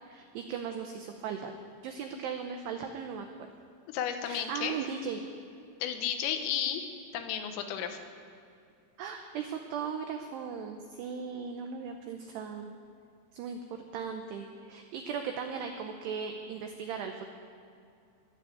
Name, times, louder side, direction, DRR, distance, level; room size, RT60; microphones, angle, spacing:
voice 1, 0.1-1.5 1.8-3.3 4.3-5.2 9.0-12.7 13.3-17.2, right 6 dB, 85° right, 5 dB, 2.4 m, -37 dB
voice 2, 3.9-4.8 5.8-6.9 7.1-8.0, left 9 dB, 85° left, 7 dB, 3.6 m, -33 dB
21.0 x 7.1 x 9.0 m, 2.5 s
omnidirectional pair, 5.8 m